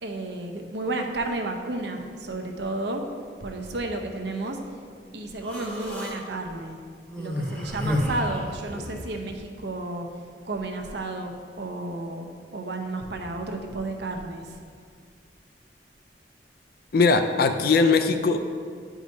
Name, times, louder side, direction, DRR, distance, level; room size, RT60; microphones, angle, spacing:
voice 1, 0.0-3.0 3.4-4.6 5.1-6.8 7.2-10.1 10.4-14.6, right 2 dB, 70° right, 3 dB, 0.7 m, -32 dB
Human voice, 5.4-6.2 7.1-9.1, left 1 dB, 10° left, 0.9 m, -30 dB
voice 2, 16.9-18.4, left 4 dB, 55° left, 7 dB, 0.4 m, -20 dB
10.0 x 4.9 x 2.7 m, 2.1 s
head